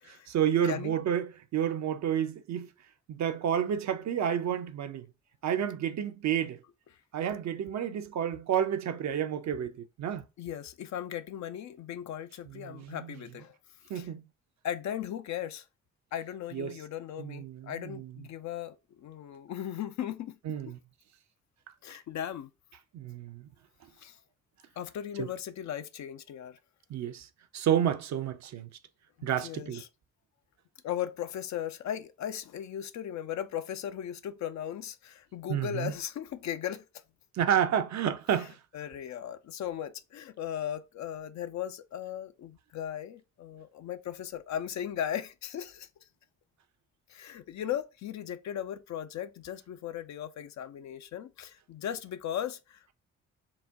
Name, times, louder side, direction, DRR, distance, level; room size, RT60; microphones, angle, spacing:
voice 1, 0.0-2.7 3.1-5.1 5.4-6.6 7.1-10.2 12.5-13.1 13.9-14.2 16.5-16.8 17.2-18.3 20.4-20.8 22.9-23.5 25.2-25.3 26.9-27.3 27.5-28.7 29.2-29.8 35.5-35.9 37.3-38.6, right 9 dB, 45° right, 0.6 m, -30 dB
voice 2, 10.4-13.5 13.9-14.1 14.6-15.6 16.1-20.4 21.8-22.5 24.0-24.2 24.8-26.6 29.2-29.9 30.8-36.8 38.7-45.9 47.1-52.9, left 10 dB, 50° left, 0.5 m, -37 dB
4.0 x 2.2 x 3.4 m
hypercardioid pair, 40°, 38 cm